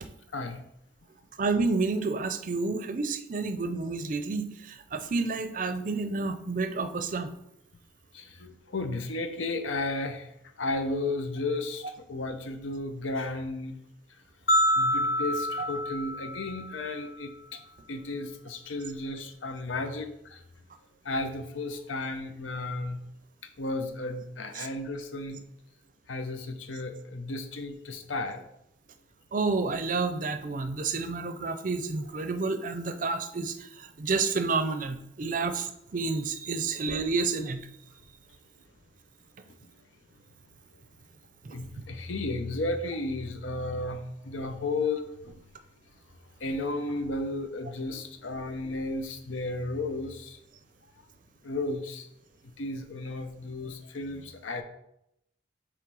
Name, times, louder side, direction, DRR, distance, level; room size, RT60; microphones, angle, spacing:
voice 1, 1.4-7.3 24.6-24.7 29.3-37.6, right 4 dB, 45° right, 9 dB, 0.5 m, -30 dB
voice 2, 8.1-10.3 10.6-11.8 12.1-13.7 14.8-17.3 17.9-20.4 21.0-23.0 23.6-25.4 26.1-28.4 41.5-45.3 46.4-50.4 51.4-52.1 52.4-54.6, left 2 dB, 90° left, 7 dB, 0.7 m, -33 dB
sound 1, 14.5-16.8, equal, 55° left, 0.7 m, -27 dB
7.6 x 3.2 x 4.7 m, 0.80 s
head